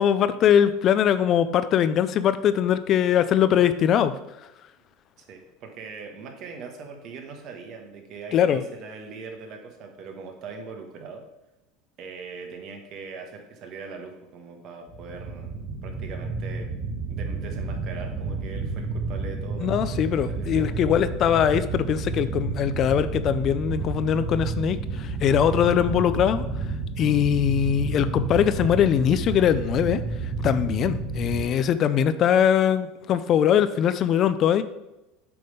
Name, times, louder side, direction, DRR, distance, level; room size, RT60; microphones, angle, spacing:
voice 1, 0.0-4.1 8.3-8.6 19.6-26.5 27.0-30.0 30.4-34.6, left 9 dB, 45° left, 13 dB, 0.4 m, -21 dB
voice 2, 5.2-11.2 12.0-15.5 15.8-16.7 17.1-20.8, right 4 dB, 50° right, 4 dB, 1.4 m, -41 dB
sound 1, 14.9-31.4, right 3 dB, 30° right, 2.0 m, -31 dB
7.7 x 3.5 x 5.4 m, 0.95 s
supercardioid pair, 110°, 0 cm